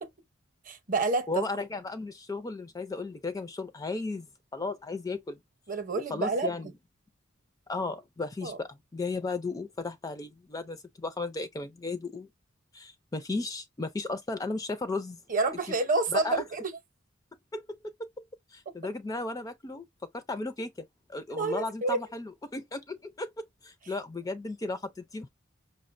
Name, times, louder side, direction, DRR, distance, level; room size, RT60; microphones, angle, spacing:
voice 1, 0.7-1.4 5.7-6.5 8.4-8.6 15.3-16.7 21.3-22.0, right 3 dB, 40° right, 0.7 m, -28 dB
voice 2, 1.3-4.3 4.5-5.4 6.1-6.7 7.7-12.3 12.7-15.2 15.7-15.8 16.1-16.4 17.5-18.2 18.5-19.8 20.1-25.3, left 3 dB, 20° left, 0.3 m, -35 dB
5.5 x 2.1 x 2.5 m
head